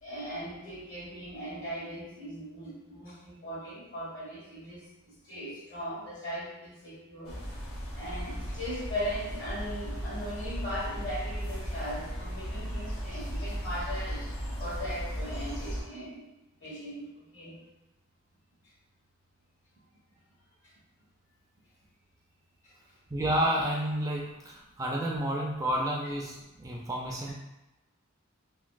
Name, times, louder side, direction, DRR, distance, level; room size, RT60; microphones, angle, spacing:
voice 1, 0.0-4.8 5.2-7.4 7.9-14.3 14.6-16.3 16.6-17.6, equal, 60° left, -7 dB, 1.4 m, -38 dB
sound 1, 7.3-15.8, equal, 85° left, 1.0 m, -36 dB
voice 2, 23.1-27.3, right 1 dB, 15° right, -2 dB, 0.3 m, -30 dB
3.0 x 2.7 x 2.5 m, 0.99 s
head